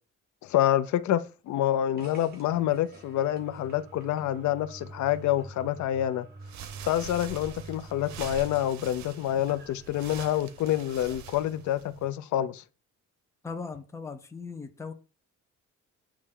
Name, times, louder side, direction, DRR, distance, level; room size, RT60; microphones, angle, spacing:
voice 1, 0.4-6.3 6.9-12.6, left 12 dB, 75° left, 0.5 m, -27 dB
sound 1, 2.0-10.7, right 3 dB, 35° right, 1.5 m, -48 dB
sound 2, 6.4-12.1, right 7 dB, 70° right, 0.8 m, -44 dB
voice 2, 13.4-14.9, left 4 dB, 10° left, 0.5 m, -38 dB
8.1 x 3.2 x 3.7 m
cardioid pair, 160°, 29 cm